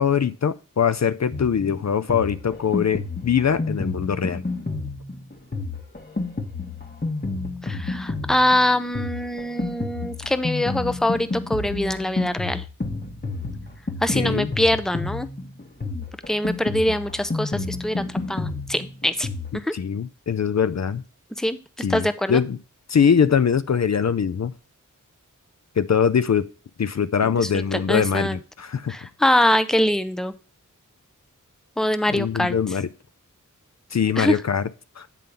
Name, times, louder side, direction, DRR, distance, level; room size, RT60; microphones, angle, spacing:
voice 1, 0.0-4.4 14.1-14.5 19.5-21.0 21.8-22.6 22.9-24.5 25.8-26.5 26.8-28.9 32.1-32.9 33.9-34.7 35.0-35.1, left 7 dB, 55° left, 0.5 m, -22 dB
Drum kit, 1.3-19.5, left 3 dB, 30° left, 1.4 m, -30 dB
voice 2, 7.6-12.6 14.0-15.3 15.9-19.3 19.5-19.7 21.4-22.4 27.2-28.4 28.9-30.3 31.8-32.5 34.2-34.4, left 1 dB, ahead, 0.6 m, -23 dB
9.1 x 3.7 x 6.8 m
wide cardioid pair, 65°, 32 cm